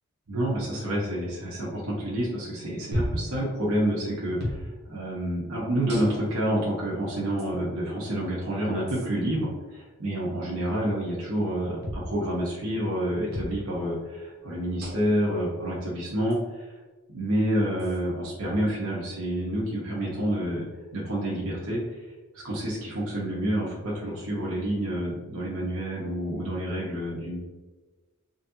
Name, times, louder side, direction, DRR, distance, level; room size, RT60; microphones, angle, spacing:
voice 1, 0.3-16.7 17.1-20.6 20.9-21.8 22.3-27.4, right 1 dB, 80° right, -6 dB, 1.1 m, -28 dB
sound 1, 2.9-3.3 4.4-4.6 5.9-6.4 7.4-7.5 8.9-9.1 11.8-12.1 13.3-13.6 14.8-15.2 16.3-16.4 17.8-18.0, left 1 dB, 50° right, 1.1 m, -33 dB
4.0 x 3.3 x 2.8 m, 1.2 s
head